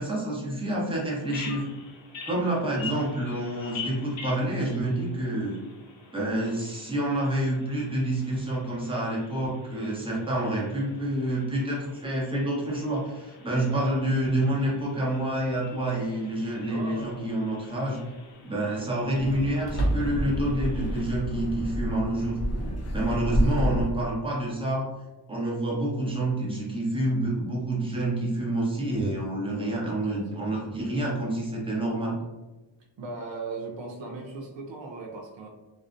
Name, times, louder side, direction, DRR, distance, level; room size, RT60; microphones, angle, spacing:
voice 1, 0.0-1.7 2.2-5.6 6.1-18.0 18.4-22.4 22.9-24.9 25.3-32.2, right 1 dB, 10° right, -5 dB, 0.8 m, -28 dB
Bird vocalization bird call bird song, 1.2-21.0, left 5 dB, 90° left, 0.6 m, -46 dB
voice 2, 16.6-17.1 23.0-23.5 29.5-30.4 33.0-35.5, right 3 dB, 70° right, 0 dB, 0.6 m, -38 dB
Wind, 19.0-24.1, equal, 35° left, 0.5 m, -30 dB
sound 1, 19.7-20.5, right 1 dB, 60° left, 0.8 m, -29 dB
2.4 x 2.1 x 2.5 m, 1.1 s
cardioid pair, 65°, 45 cm